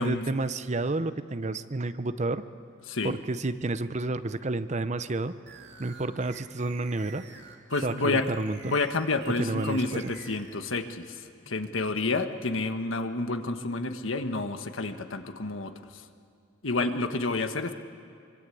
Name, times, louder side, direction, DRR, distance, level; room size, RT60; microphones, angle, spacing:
voice 1, 0.0-2.4 3.0-5.3 5.8-7.3 7.8-8.8 9.4-10.1, right 2 dB, 35° right, 12 dB, 0.7 m, -30 dB
sound 1, 5.5-10.8, right 6 dB, 60° right, 2.7 m, -48 dB
voice 2, 7.7-8.3 8.6-16.0 16.6-17.7, left 3 dB, 80° left, 7 dB, 1.4 m, -29 dB
25.0 x 24.5 x 8.5 m, 2.4 s
head